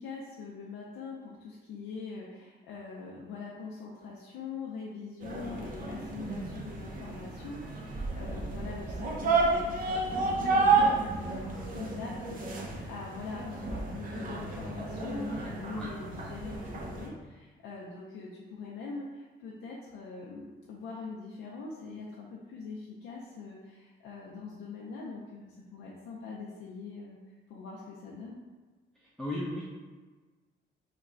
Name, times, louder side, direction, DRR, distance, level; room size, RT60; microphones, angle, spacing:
voice 1, 0.0-27.2 27.5-28.4, left 4 dB, 85° left, -4 dB, 0.5 m, -43 dB
sound 1, 5.2-17.1, right 3 dB, 45° right, 0.7 m, -31 dB
voice 2, 28.9-29.7, left 1 dB, ahead, -7 dB, 0.6 m, -36 dB
3.2 x 2.2 x 3.7 m, 1.3 s
cardioid pair, 90°, 20 cm